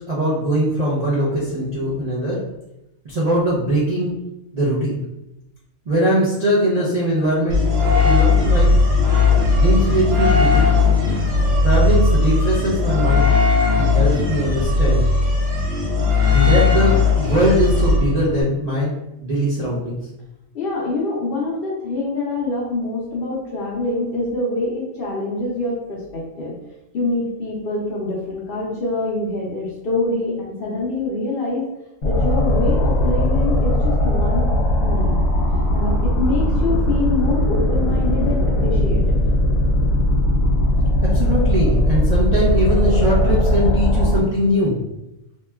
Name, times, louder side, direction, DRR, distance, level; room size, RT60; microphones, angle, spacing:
voice 1, 0.1-2.4 3.0-4.1 4.5-5.0 5.9-8.7 9.5-10.8 11.6-13.3 13.7-15.1 16.3-18.9 19.2-20.0 41.0-44.8, right 1 dB, 55° right, -7 dB, 0.4 m, -21 dB
sound 1, 7.5-18.4, left 4 dB, 75° right, 1.3 m, -17 dB
voice 2, 20.5-26.5 26.9-31.7 32.0-35.2 35.7-39.2, left 2 dB, 60° left, -4 dB, 0.6 m, -25 dB
sound 2, 32.0-44.2, left 1 dB, 90° left, 1.0 m, -18 dB
2.9 x 2.2 x 2.2 m, 0.90 s
omnidirectional pair, 1.4 m